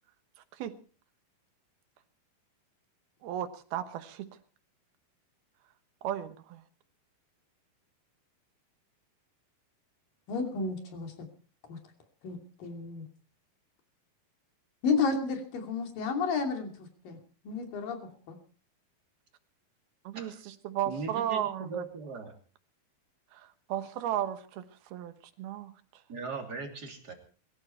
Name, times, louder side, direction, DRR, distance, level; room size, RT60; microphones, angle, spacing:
voice 1, 3.2-4.3 6.0-6.6 20.0-21.8 23.3-26.0, right 11 dB, 85° right, 10 dB, 3.2 m, -35 dB
voice 2, 10.3-11.3 11.7-11.8 12.2-13.1 14.8-17.2 17.4-18.4, left 4 dB, 65° left, 4 dB, 4.3 m, -32 dB
voice 3, 20.9-22.3 26.1-27.1, right 4 dB, 30° right, 3 dB, 3.2 m, -39 dB
22.5 x 13.5 x 4.3 m, 0.39 s
omnidirectional pair, 4.3 m